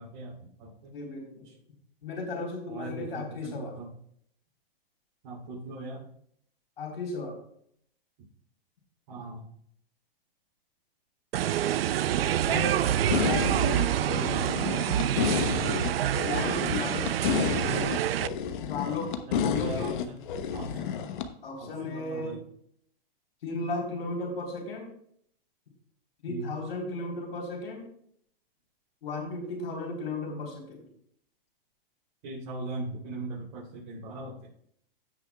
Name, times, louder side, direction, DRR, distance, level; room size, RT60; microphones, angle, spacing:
voice 1, 0.0-1.0 1.4-1.6 2.7-3.9 5.2-6.1 9.1-9.5 15.0-15.6 19.3-20.2 20.5-21.0 21.6-22.4 26.3-26.5 32.2-34.5, right 2 dB, 45° right, -6 dB, 3.2 m, -40 dB
voice 2, 0.9-1.5 2.0-3.8 6.8-7.4 12.5-13.6 16.2-17.7 18.7-19.1 19.4-19.9 21.4-22.4 23.4-24.9 26.2-27.9 29.0-30.8, left 3 dB, 75° left, 0 dB, 3.8 m, -35 dB
sound 1, 11.3-18.3, right 11 dB, 80° right, 0.5 m, -27 dB
sound 2, 13.1-21.3, left 7 dB, 55° left, 1.0 m, -30 dB
15.5 x 6.2 x 2.3 m, 0.68 s
hypercardioid pair, 140°, 29 cm